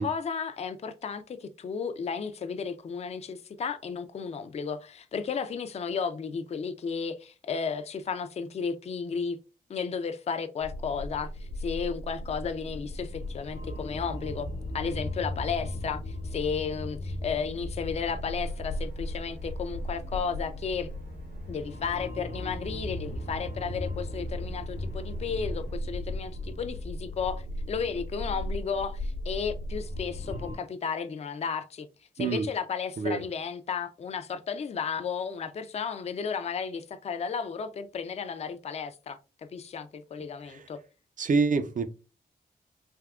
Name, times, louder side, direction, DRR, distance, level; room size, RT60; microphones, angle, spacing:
voice 1, 0.0-9.4 9.7-14.5 14.7-20.9 21.5-31.9 32.2-39.2 39.5-40.8, left 6 dB, 40° left, 0.4 m, -33 dB
sound 1, 10.6-30.6, left 1 dB, 80° left, 0.9 m, -36 dB
sound 2, 17.8-25.8, left 1 dB, 75° right, 1.6 m, -51 dB
voice 2, 41.2-41.8, right 4 dB, 50° right, 0.5 m, -26 dB
3.5 x 2.7 x 2.3 m
cardioid pair, 75°, 17 cm